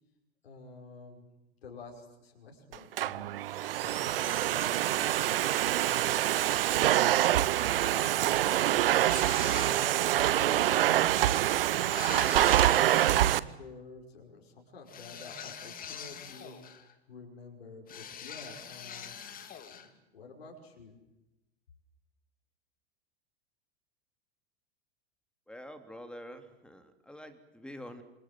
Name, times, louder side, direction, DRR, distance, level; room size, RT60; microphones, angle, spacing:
voice 1, 0.4-1.3 1.6-3.3 3.8-6.3 7.1-8.7 9.3-19.1 19.7-21.0, left 3 dB, 70° left, 1 dB, 5.8 m, -50 dB
Domestic sounds home sounds, 2.7-13.4, right 13 dB, 60° right, 1.0 m, -26 dB
sound 1, 8.9-10.1 11.9-13.3 14.9-16.9 17.9-19.9, left 8 dB, 25° left, 2.7 m, -44 dB
voice 2, 25.5-28.0, equal, 5° left, 8 dB, 3.3 m, -46 dB
27.5 x 26.5 x 7.8 m, 0.96 s
figure-of-eight pair, 90°, 32 cm